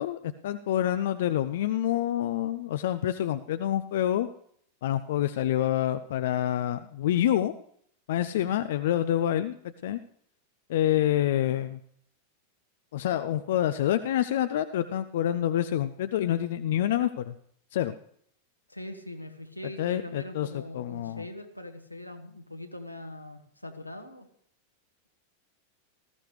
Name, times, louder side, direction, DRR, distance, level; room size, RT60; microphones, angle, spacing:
voice 1, 0.0-4.3 4.8-7.5 8.1-9.6 9.8-10.0 10.7-11.8 12.9-17.3 17.7-17.9 19.8-20.5 20.7-21.3, left 11 dB, 55° left, 11 dB, 0.5 m, -27 dB
voice 2, 8.3-8.6 18.7-24.3, left 1 dB, 90° left, 6 dB, 1.4 m, -42 dB
19.0 x 14.0 x 3.3 m, 0.64 s
figure-of-eight pair, 90°, 0 cm